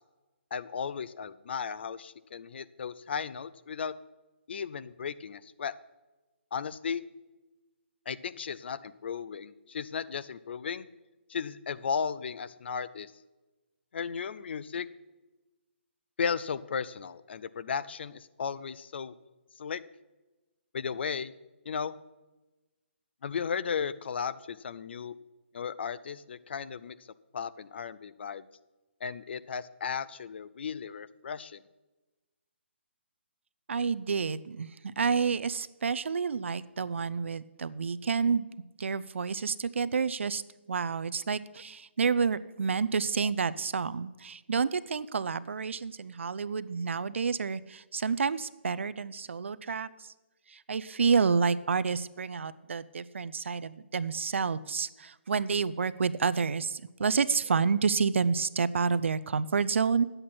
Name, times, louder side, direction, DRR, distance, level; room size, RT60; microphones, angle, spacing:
voice 1, 0.5-3.9 4.5-5.7 6.5-7.0 8.1-10.9 11.3-13.1 13.9-14.9 16.2-19.1 19.6-19.8 20.7-21.3 21.7-22.0 23.2-25.2 25.5-27.0 27.3-28.5 29.0-31.6, left 6 dB, 60° left, 16 dB, 0.5 m, -35 dB
voice 2, 33.7-34.7 35.0-38.5 38.8-40.4 40.7-50.1 50.5-60.0, right 5 dB, 75° right, 16 dB, 0.5 m, -29 dB
10.0 x 7.9 x 5.9 m, 1.1 s
hypercardioid pair, 150°, 7 cm